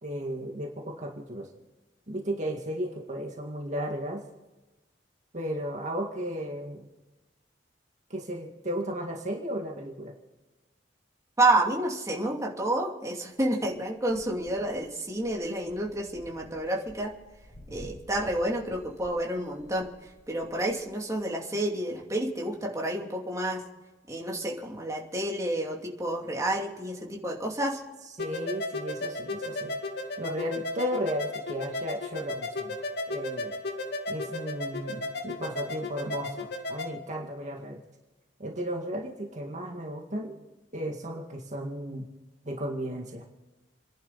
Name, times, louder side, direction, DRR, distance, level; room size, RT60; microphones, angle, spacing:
voice 1, 0.0-1.5 2.1-4.2 5.3-6.8 8.1-10.1 28.2-29.7 30.2-32.8 33.1-33.5 34.1-37.8 38.4-40.4 40.7-42.1 42.5-43.2, equal, 40° right, 0 dB, 2.0 m, -34 dB
voice 2, 11.4-17.1 17.7-19.9 20.3-23.6 24.1-27.8, right 1 dB, 20° right, -1 dB, 2.7 m, -29 dB
sound 1, 14.0-21.2, equal, 80° left, 4.8 m, -52 dB
sound 2, 28.2-36.9, left 2 dB, 60° left, 2.2 m, -34 dB
30.0 x 11.0 x 4.1 m, 1.2 s
head